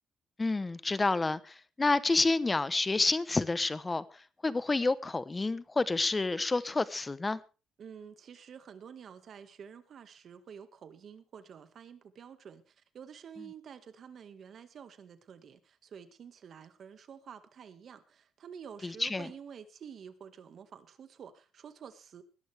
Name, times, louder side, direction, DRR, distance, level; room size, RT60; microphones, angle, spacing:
voice 1, 0.4-4.0 4.4-7.4 13.4-13.5 18.8-19.3, left 3 dB, 25° left, 0.9 m, -29 dB
voice 2, 7.8-22.2, right 7 dB, 60° right, 1.8 m, -49 dB
20.5 x 11.5 x 3.5 m
cardioid pair, 90°, 0 cm